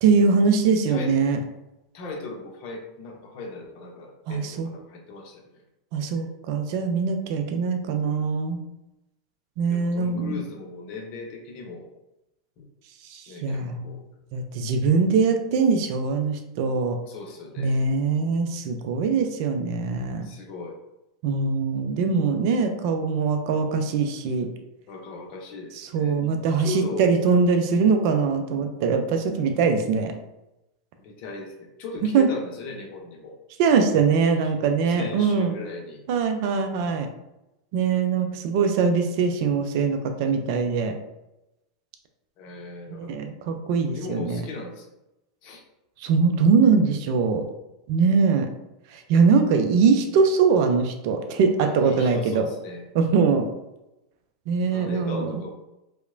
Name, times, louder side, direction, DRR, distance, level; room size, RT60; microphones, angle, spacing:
voice 1, 0.0-1.4 4.3-4.7 5.9-8.6 9.6-10.4 13.1-14.0 14.3-17.0 17.6-20.3 21.2-24.5 25.8-30.1 32.1-32.3 33.6-35.5 36.1-37.1 37.7-40.9 42.9-44.4 46.0-47.4 47.9-48.5 48.9-52.5 52.9-53.5 54.5-55.4, right 5 dB, 55° right, 6 dB, 0.4 m, -22 dB
voice 2, 1.9-5.5 9.7-11.9 12.6-12.7 13.3-14.0 17.1-17.8 20.2-20.8 24.9-26.2 26.6-27.1 31.0-33.4 34.4-34.5 34.9-36.0 42.4-43.2 43.9-44.9 45.4-45.6 51.6-52.8 54.7-55.5, left 3 dB, 50° left, 1 dB, 0.6 m, -37 dB
2.8 x 2.1 x 2.5 m, 0.93 s
hypercardioid pair, 95°, 2 cm